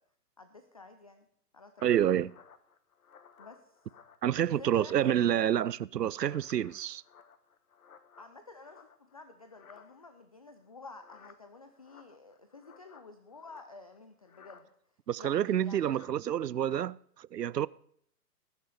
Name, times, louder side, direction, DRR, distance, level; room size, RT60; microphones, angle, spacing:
voice 1, 0.4-1.3 1.5-2.3 3.4-3.8 4.5-5.5 8.2-14.7 15.2-15.9, left 3 dB, 25° left, 0.4 m, -51 dB
sound 1, 1.8-4.4 4.7-5.6 5.9-9.2 9.5-10.2 10.9-14.0 14.2-14.7 15.7-16.2 16.5-16.8, left 6 dB, 65° left, 1.2 m, -58 dB
voice 2, 1.8-2.3 4.2-7.0 15.1-17.7, right 10 dB, 90° right, 0.5 m, -28 dB
19.5 x 6.7 x 4.9 m
figure-of-eight pair, 135°, 47 cm